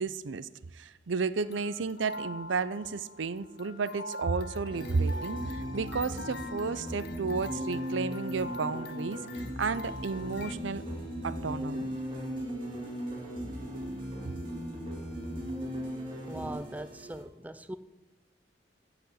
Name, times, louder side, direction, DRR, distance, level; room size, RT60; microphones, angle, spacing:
voice 1, 0.0-10.8 11.2-12.0, right 4 dB, 85° right, 0.6 m, -32 dB
sound 1, 1.4-10.5, left 2 dB, 60° left, 0.6 m, -44 dB
sound 2, 4.7-16.5, equal, 25° right, 2.5 m, -38 dB
sound 3, 9.8-17.2, right 2 dB, 45° right, 3.0 m, -49 dB
voice 2, 16.3-17.8, right 1 dB, 10° right, 0.4 m, -40 dB
14.5 x 5.1 x 8.0 m
head